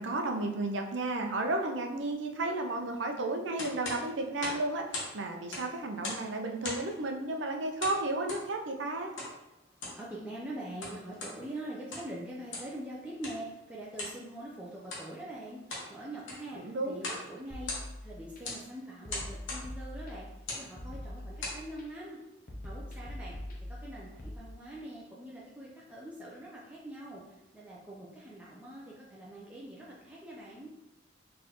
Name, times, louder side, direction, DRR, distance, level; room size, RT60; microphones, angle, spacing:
voice 1, 0.0-9.1 16.5-17.2, right 2 dB, 75° right, 3 dB, 0.6 m, -33 dB
sound 1, 3.6-5.1 5.4-6.3 6.6-7.0 7.8-8.5 9.2-9.3 9.7-10.0 10.6-11.4 11.8-12.2 12.5-12.8 13.2-13.4 14.0-14.2 14.8-15.1 15.5-15.9 16.2-16.5 17.0-17.3 17.5-18.1 18.4-18.6 19.1-19.7 20.4-20.7 21.2-21.6, left 2 dB, 80° left, 1.2 m, -39 dB
voice 2, 10.0-15.6 15.9-17.7 18.0-20.3 20.6-22.2 22.6-23.3 23.7-30.7, right 1 dB, 5° right, -6 dB, 0.5 m, -44 dB
sound 2, 17.5-18.4 19.0-20.4 20.8-21.8 22.5-24.4, left 1 dB, 45° left, 0.6 m, -43 dB
4.2 x 3.2 x 3.0 m, 0.98 s
head